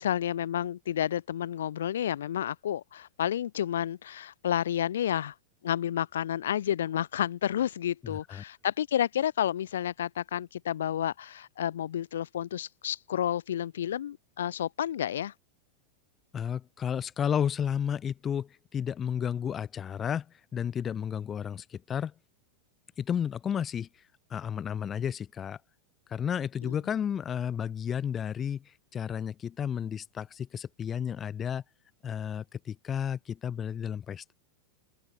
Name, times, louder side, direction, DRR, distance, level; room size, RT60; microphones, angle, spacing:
voice 1, 0.0-5.3 5.6-15.3 26.6-26.8, left 10 dB, 60° left, 1.1 m, -30 dB
voice 2, 8.0-8.4 16.3-20.3 20.5-22.1 23.0-23.9 24.3-25.6 26.1-31.6 32.0-34.3, left 8 dB, 25° left, 1.2 m, -32 dB
open air
figure-of-eight pair, 90°, 0 cm